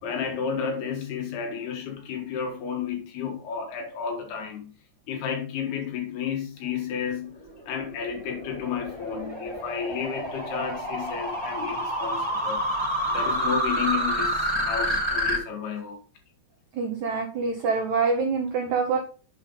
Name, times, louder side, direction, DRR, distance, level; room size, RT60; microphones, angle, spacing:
voice 1, 0.0-4.7 5.1-7.4 7.7-12.7 13.1-16.0, left 7 dB, 70° left, 3.7 m, -32 dB
sound 1, 7.3-15.4, equal, 10° right, 1.6 m, -28 dB
voice 2, 16.7-19.0, right 4 dB, 80° right, 1.7 m, -25 dB
7.7 x 5.7 x 4.0 m
omnidirectional pair, 4.8 m